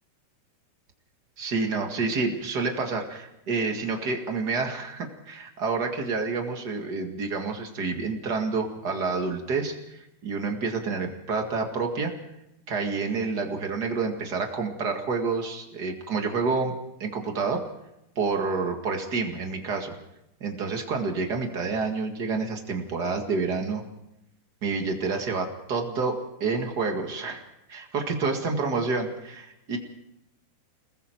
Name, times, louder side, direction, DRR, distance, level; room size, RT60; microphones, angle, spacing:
voice 1, 1.4-12.1 12.7-16.7 17.0-17.6 18.1-19.9 20.4-23.8 24.6-27.4 27.7-29.8, right 4 dB, 45° right, 3 dB, 1.3 m, -28 dB
29.0 x 20.5 x 4.6 m, 0.84 s
omnidirectional pair, 4.9 m